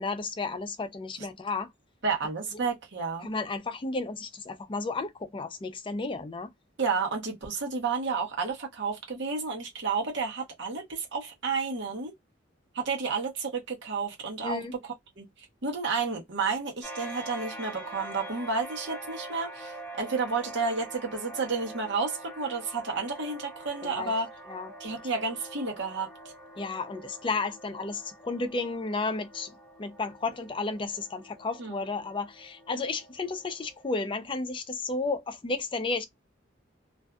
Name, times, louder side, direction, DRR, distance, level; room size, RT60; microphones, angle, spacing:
voice 1, 0.0-1.7 2.5-2.7 3.2-6.5 14.4-14.7 23.8-24.1 24.5-24.7 26.6-29.5 29.8-36.0, left 3 dB, 25° left, 0.4 m, -33 dB
voice 2, 2.0-3.3 6.8-12.1 12.7-15.2 15.6-24.3 24.8-26.1 31.6-31.8, right 4 dB, 65° right, 0.9 m, -31 dB
sound 1, 16.8-34.1, right 1 dB, 10° left, 0.9 m, -45 dB
2.5 x 2.3 x 2.2 m
head